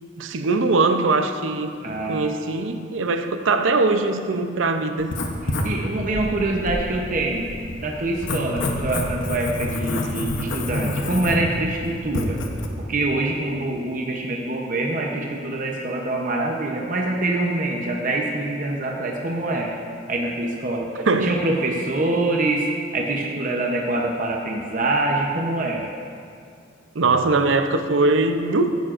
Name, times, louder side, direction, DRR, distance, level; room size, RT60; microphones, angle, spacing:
voice 1, 0.2-1.7 2.0-5.1 21.0-21.4 22.0-22.2 26.9-28.8, right 3 dB, 80° right, 8 dB, 0.6 m, -21 dB
voice 2, 1.8-2.3 5.4-7.5 7.8-12.4 12.9-19.7 20.1-22.7 22.9-25.9, right 2 dB, 45° right, 0 dB, 0.8 m, -25 dB
Writing, 5.0-12.7, left 1 dB, 75° left, 0.9 m, -28 dB
16.0 x 9.3 x 2.5 m, 2.2 s
head